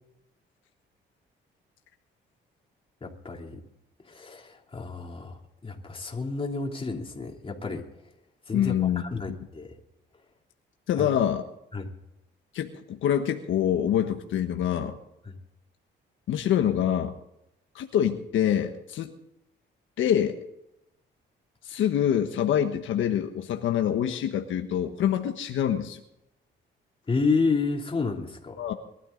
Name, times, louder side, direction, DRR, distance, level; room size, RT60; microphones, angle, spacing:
voice 1, 3.0-3.6 4.0-7.8 8.5-9.7 11.0-11.1 11.7-11.9 15.3-15.4 27.1-28.6, left 4 dB, 25° left, 1 dB, 3.2 m, -30 dB
voice 2, 8.5-9.0 10.9-11.4 12.5-15.0 16.3-17.1 17.7-19.1 20.0-20.4 21.6-26.0 28.6-28.7, left 10 dB, 75° left, 5 dB, 1.3 m, -25 dB
22.0 x 13.0 x 4.0 m, 0.85 s
cardioid pair, 90°, 20 cm